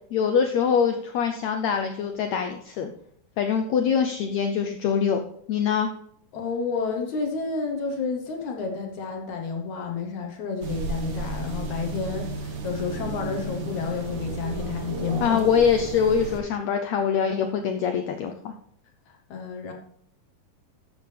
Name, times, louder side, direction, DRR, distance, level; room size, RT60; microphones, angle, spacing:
voice 1, 0.1-2.9 3.4-5.2 5.5-5.9 15.2-18.5, left 7 dB, 85° left, 6 dB, 1.5 m, -24 dB
voice 2, 6.3-15.4 19.1-19.7, left 4 dB, 65° left, 2 dB, 2.2 m, -30 dB
sound 1, 10.6-16.4, right 3 dB, 60° right, 1.3 m, -33 dB
13.5 x 8.2 x 3.3 m, 0.68 s
omnidirectional pair, 4.0 m